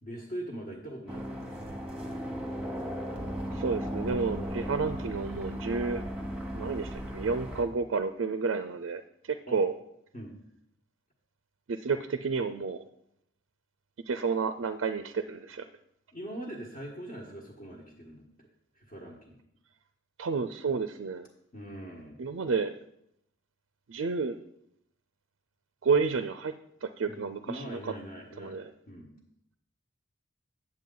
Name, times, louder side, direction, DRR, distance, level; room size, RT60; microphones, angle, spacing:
voice 1, 0.0-1.8 9.5-9.6 10.1-10.3 16.1-18.5 18.7-19.4 21.5-22.2 27.1-28.6 28.9-29.1, right 1 dB, 45° left, -5 dB, 1.3 m, -42 dB
sound 1, 1.1-7.6, equal, 5° right, 1.1 m, -36 dB
voice 2, 3.5-6.0 6.5-9.7 11.7-12.8 14.1-15.7 20.2-21.3 22.2-22.8 23.9-24.4 25.8-26.5 26.8-27.9 28.4-28.7, right 4 dB, 65° right, 10 dB, 0.4 m, -30 dB
9.3 x 7.6 x 3.8 m, 0.77 s
head